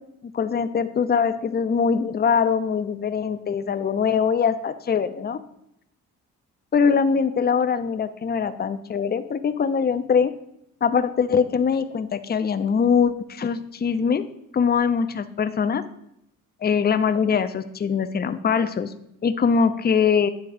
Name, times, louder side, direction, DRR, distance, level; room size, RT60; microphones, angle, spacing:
voice 1, 0.2-5.4 6.7-10.3 10.8-14.3 14.5-15.8 16.6-18.9 19.2-20.3, left 6 dB, 25° left, 11 dB, 0.5 m, -22 dB
9.3 x 3.4 x 4.9 m, 0.78 s
supercardioid pair, 65°, 35 cm